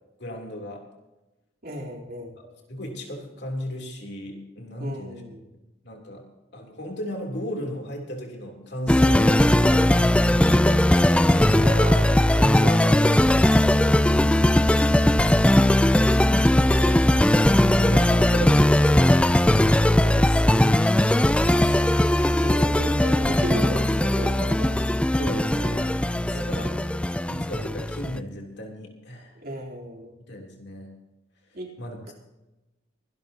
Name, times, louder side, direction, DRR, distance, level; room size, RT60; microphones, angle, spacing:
voice 1, 0.2-0.8 2.4-5.2 5.8-6.3 6.5-11.9 12.2-13.1 16.6-19.1 19.6-20.9 21.3-21.8 25.2-26.8 27.3-29.4 30.3-30.9 31.8-32.1, equal, 60° left, 1 dB, 3.3 m, -36 dB
voice 2, 1.6-2.3 4.8-5.5 11.5-13.1 13.8-14.6 22.4-24.8 26.3-26.8 29.3-30.1 31.5-31.7 32.1-32.2, right 1 dB, 50° right, -1 dB, 3.6 m, -35 dB
sound 1, 8.9-28.2, left 1 dB, 5° left, 0.4 m, -19 dB
25.0 x 12.5 x 2.9 m, 1.0 s
head